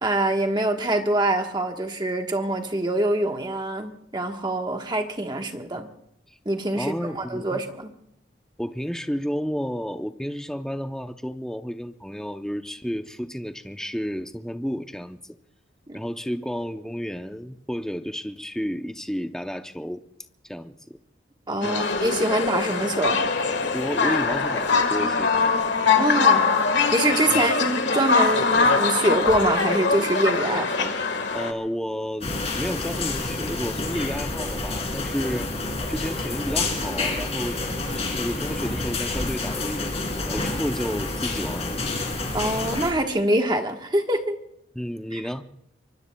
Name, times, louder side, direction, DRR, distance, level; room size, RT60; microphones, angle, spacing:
voice 1, 0.0-5.9 6.4-7.9 15.9-16.0 21.5-23.2 26.0-30.9 42.3-44.4 45.1-45.2, right 1 dB, 25° right, 4 dB, 1.2 m, -25 dB
voice 2, 6.7-7.6 8.6-15.2 15.9-20.0 20.5-21.0 21.6-21.9 23.7-25.3 27.3-27.6 31.3-35.5 35.9-37.6 37.9-41.8 44.7-45.4, equal, 5° left, 7 dB, 0.5 m, -31 dB
sound 1, 21.6-31.5, left 4 dB, 70° left, 1.5 m, -22 dB
sound 2, 32.2-42.9, left 2 dB, 35° left, 2.8 m, -28 dB
25.0 x 24.0 x 2.3 m, 0.74 s
head